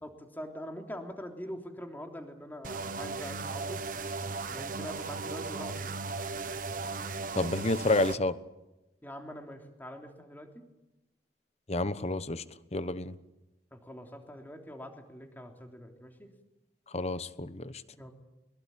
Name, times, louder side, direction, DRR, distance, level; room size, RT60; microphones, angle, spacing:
voice 1, 0.0-3.8 4.5-5.9 9.0-10.6 13.7-16.3 18.0-18.1, equal, 10° left, 3 dB, 3.3 m, -43 dB
sound 1, 2.6-8.2, right 3 dB, 50° right, 1.2 m, -36 dB
voice 2, 7.4-8.3 11.7-12.4 12.7-13.1 16.9-17.8, left 2 dB, 40° left, 13 dB, 1.1 m, -29 dB
23.0 x 22.0 x 9.0 m, 0.98 s
head